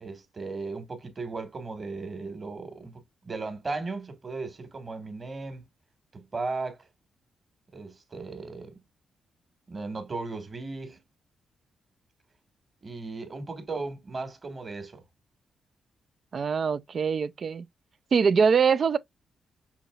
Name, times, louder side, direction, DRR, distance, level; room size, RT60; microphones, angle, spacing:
voice 1, 0.0-2.9 3.2-5.6 6.1-6.8 7.7-8.8 9.7-11.0 12.8-15.0, right 3 dB, 40° right, 1.6 m, -36 dB
voice 2, 16.3-17.7 18.1-19.0, right 6 dB, 55° right, 0.4 m, -23 dB
5.7 x 2.8 x 2.3 m
cardioid pair, 65°, 0 cm